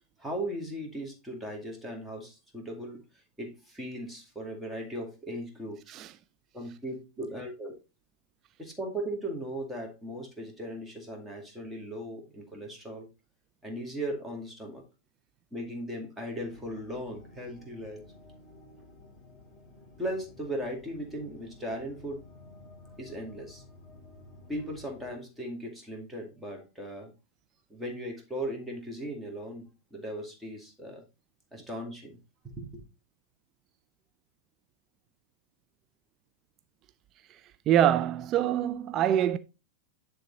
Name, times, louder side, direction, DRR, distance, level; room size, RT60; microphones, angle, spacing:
voice 1, 0.2-3.0 3.4-5.9 6.5-7.8 8.6-13.1 13.6-14.8 15.5-18.0 20.0-22.2 23.0-23.6 24.5-27.1 27.7-31.0 31.5-32.2 32.4-32.8, right 1 dB, 5° right, 2.1 m, -38 dB
sound 1, 16.3-25.1, left 2 dB, 15° left, 2.1 m, -53 dB
voice 2, 37.7-39.4, right 11 dB, 35° right, 0.4 m, -25 dB
10.0 x 3.5 x 3.9 m
figure-of-eight pair, 90°, 0 cm